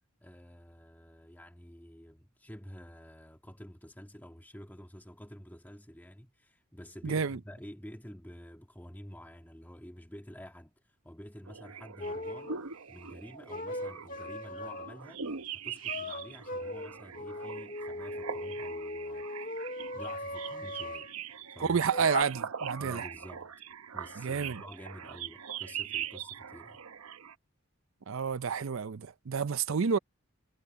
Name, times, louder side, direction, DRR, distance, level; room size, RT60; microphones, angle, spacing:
voice 1, 0.2-12.6 12.9-19.3 19.9-21.1 21.5-21.8 22.8-23.5 23.9-26.8, equal, 10° left, 1.9 m, -49 dB
voice 2, 7.0-7.4 21.6-23.0 24.2-24.6 28.1-30.0, right 6 dB, 65° right, 0.5 m, -30 dB
sound 1, 11.5-27.3, right 7 dB, 90° right, 0.9 m, -42 dB
sound 2, 12.0-12.6 13.5-15.1 15.9-21.1 21.9-22.2, left 1 dB, 40° left, 1.8 m, -38 dB
head